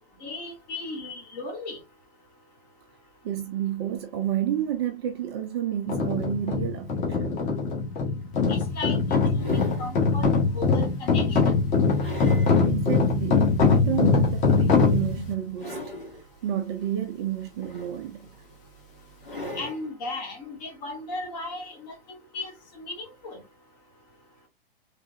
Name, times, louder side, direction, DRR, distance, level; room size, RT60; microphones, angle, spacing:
voice 1, 0.2-1.8 8.5-10.3 10.5-11.5 19.5-23.4, left 2 dB, 45° left, 2.0 m, -36 dB
voice 2, 3.2-7.4 12.7-15.8 16.4-18.3, right 11 dB, 30° right, 0.5 m, -30 dB
sound 1, 5.9-15.3, left 4 dB, 25° left, 1.4 m, -22 dB
sound 2, 8.2-8.3 8.9-10.0 10.6-10.8 11.4-12.6 13.1-13.2 14.7-15.1 15.5-16.2 17.4-18.3 19.2-19.9 21.2-21.3, equal, 65° left, 2.6 m, -39 dB
3.5 x 3.3 x 2.5 m
figure-of-eight pair, 110°, 29 cm